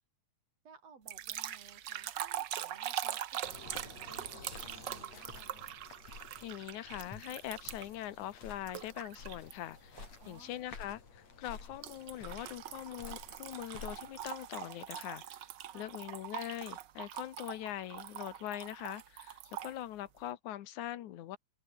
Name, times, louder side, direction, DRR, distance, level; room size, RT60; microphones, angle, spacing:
voice 1, 0.6-5.8 10.2-10.6 15.7-15.9, right 5 dB, 60° right, 4.7 m, -59 dB
sound 1, 1.1-8.0 8.7-9.5 10.0-10.3 11.8-19.7, right 11 dB, 85° right, 1.0 m, -42 dB
sound 2, 3.4-14.3, left 5 dB, 65° left, 5.7 m, -51 dB
voice 2, 6.4-15.4 15.7-21.4, left 13 dB, 90° left, 2.6 m, -42 dB
open air
omnidirectional pair, 3.3 m